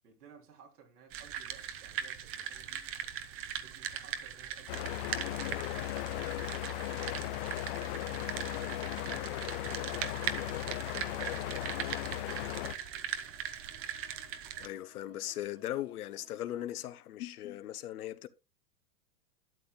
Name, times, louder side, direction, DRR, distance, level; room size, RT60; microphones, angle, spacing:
voice 1, 0.0-2.8 3.6-7.1 7.6-11.3 11.7-13.1, right 6 dB, 75° right, 3.3 m, -58 dB
sound 1, 1.1-14.7, right 9 dB, 30° right, 0.8 m, -40 dB
sound 2, 4.7-12.7, left 16 dB, 40° left, 0.5 m, -37 dB
sound 3, 9.0-16.6, left 5 dB, 90° left, 1.9 m, -61 dB
voice 2, 14.6-18.3, left 13 dB, 70° left, 0.8 m, -38 dB
12.0 x 7.9 x 2.3 m
hypercardioid pair, 120°, 46 cm